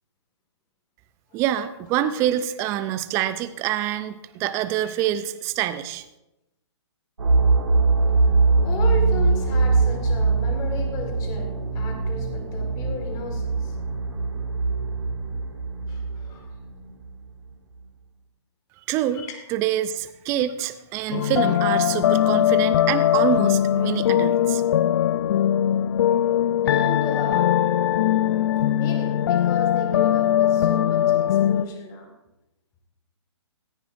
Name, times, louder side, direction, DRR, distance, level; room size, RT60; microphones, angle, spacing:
voice 1, 1.3-6.0 18.9-19.2 19.5-24.6, right 12 dB, 20° right, 12 dB, 0.4 m, -26 dB
sound 1, 7.2-17.0, right 3 dB, 85° right, 2.2 m, -22 dB
voice 2, 8.6-13.8 15.9-16.5 19.1-19.4 26.6-27.7 28.7-32.1, left 3 dB, 25° left, 4 dB, 1.9 m, -36 dB
sound 2, 21.1-31.7, left 11 dB, 55° left, 0.4 m, -20 dB
16.5 x 10.5 x 2.6 m, 0.94 s
hypercardioid pair, 140°, 15 cm